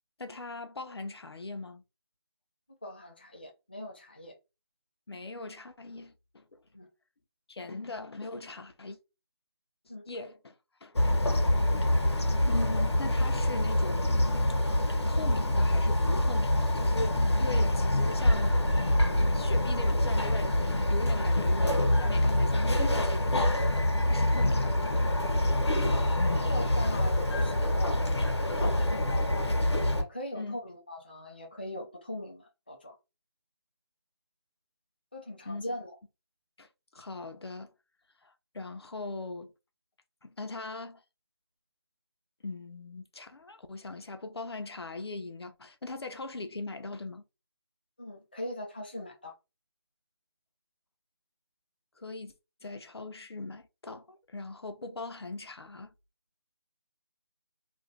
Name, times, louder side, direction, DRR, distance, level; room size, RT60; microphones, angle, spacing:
voice 1, 0.2-1.8 5.1-6.6 7.5-9.0 10.1-10.6 10.8-11.0 12.5-14.2 15.1-20.6 20.9-25.2 30.4-30.6 35.5-35.6 36.6-36.7 36.9-37.7 38.2-39.5 40.2-41.0 42.4-47.2 52.0-52.3 52.6-55.9, left 3 dB, 70° left, 0.7 m, -40 dB
voice 2, 2.7-4.4 6.7-6.9 9.9-10.0 26.3-28.0 28.4-29.6 29.9-32.9 35.1-35.9 48.0-49.3, left 1 dB, 25° left, 0.3 m, -40 dB
Bird vocalization bird call bird song, 10.9-30.0, left 1 dB, 85° left, 1.1 m, -26 dB
2.5 x 2.3 x 3.1 m
figure-of-eight pair, 170°, 14 cm